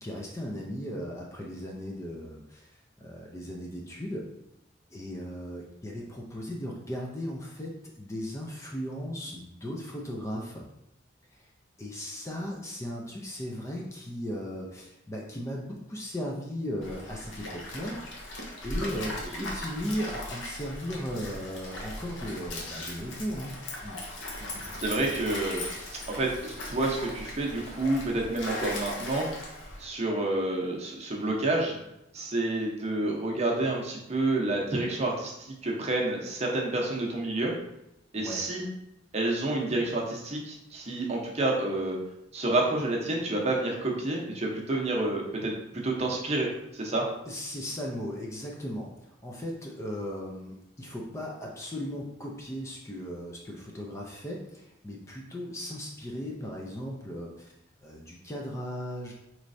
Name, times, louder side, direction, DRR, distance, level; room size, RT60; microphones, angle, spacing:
voice 1, 0.0-4.3 4.9-10.7 11.3-11.5 11.8-18.3 18.6-23.5 23.8-24.0 38.2-38.4 47.3-57.5 57.8-59.1, equal, 15° left, -1 dB, 0.4 m, -37 dB
Stream, 16.8-29.9, left 1 dB, 75° left, 0.9 m, -38 dB
voice 2, 24.8-25.7 26.1-29.3 29.8-31.8 32.1-37.5 38.1-38.6 39.1-42.0 42.3-47.1, right 2 dB, 35° right, -1 dB, 0.7 m, -29 dB
4.4 x 3.1 x 2.6 m, 0.84 s
head